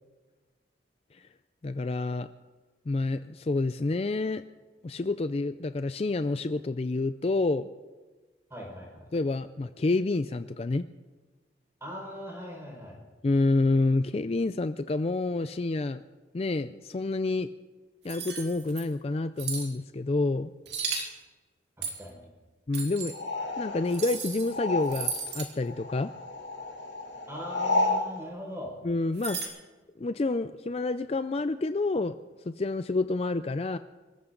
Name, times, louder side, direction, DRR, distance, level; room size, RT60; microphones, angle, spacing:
voice 1, 1.6-2.3 2.9-4.4 4.8-7.7 9.1-10.8 13.2-16.0 16.3-17.5 18.0-20.5 22.7-23.1 23.6-26.1 28.8-29.4 30.0-32.1 32.5-33.8, left 3 dB, 35° left, 11 dB, 0.4 m, -28 dB
voice 2, 8.5-9.1 11.8-13.0 21.8-22.3 27.3-28.8, left 1 dB, 15° right, -1 dB, 5.2 m, -40 dB
sound 1, 18.1-18.8 19.4-19.7 20.7-21.1 21.8-22.1 22.7-23.1 23.9-24.5 24.8-25.5 29.2-29.5, right 6 dB, 65° right, 3.0 m, -35 dB
sound 2, 23.1-25.4 25.6-28.1, left 2 dB, 85° left, 2.7 m, -31 dB
25.5 x 14.0 x 3.9 m, 1.3 s
head